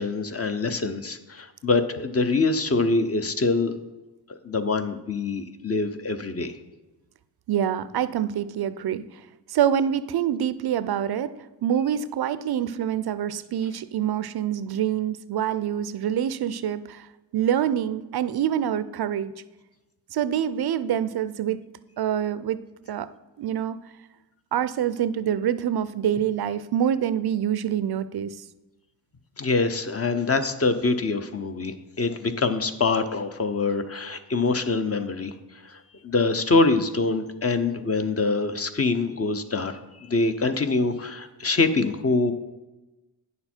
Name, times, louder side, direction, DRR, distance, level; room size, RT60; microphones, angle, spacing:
voice 1, 0.0-3.8 4.3-6.5 29.4-35.4 35.6-42.3, left 3 dB, 35° left, 8 dB, 0.7 m, -25 dB
voice 2, 7.5-9.2 9.5-11.3 11.6-17.1 17.3-19.3 20.1-21.6 22.0-22.6 22.9-23.1 23.4-23.8 24.5-28.4, right 9 dB, 65° right, 14 dB, 0.5 m, -26 dB
9.4 x 6.8 x 4.4 m, 1.1 s
cardioid pair, 85°, 42 cm